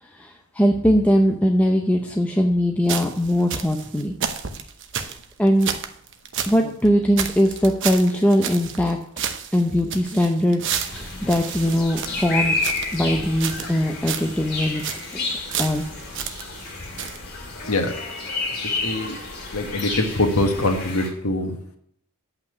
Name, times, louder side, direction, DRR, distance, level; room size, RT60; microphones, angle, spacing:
voice 1, 0.0-4.1 5.0-5.7 6.5-9.0 9.5-12.5 12.9-15.3 15.6-15.9, equal, 5° left, 2 dB, 0.7 m, -21 dB
sound 1, 2.9-6.6 6.9-7.0 7.2-8.9 9.2-13.0 13.4-13.8 14.1-14.3 14.6-15.1 15.5-16.7 17.0-17.2, right 7 dB, 55° right, 0.9 m, -31 dB
sound 2, 10.8-21.1, left 3 dB, 45° left, 2.6 m, -30 dB
voice 2, 18.6-19.2 19.5-21.8, left 2 dB, 85° left, 5 dB, 1.5 m, -23 dB
8.6 x 5.7 x 8.1 m, 0.68 s
head